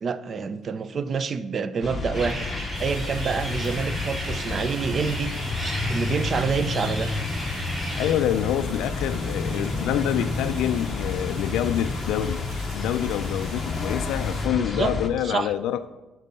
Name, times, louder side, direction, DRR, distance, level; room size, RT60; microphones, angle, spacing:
voice 1, 0.0-2.5 2.8-5.3 5.9-7.1 14.6-14.9 15.2-15.5, right 5 dB, 30° right, 13 dB, 0.4 m, -27 dB
sound 1, 1.8-15.1, left 3 dB, 25° left, 0.6 m, -30 dB
sound 2, 2.1-8.1, right 1 dB, 15° right, 1.9 m, -35 dB
sound 3, 2.7-14.5, right 3 dB, 85° right, 2.0 m, -43 dB
voice 2, 8.0-12.4 12.7-15.9, left 11 dB, 75° left, 10 dB, 0.3 m, -26 dB
11.5 x 4.5 x 5.4 m, 1.1 s
cardioid pair, 170°, 0 cm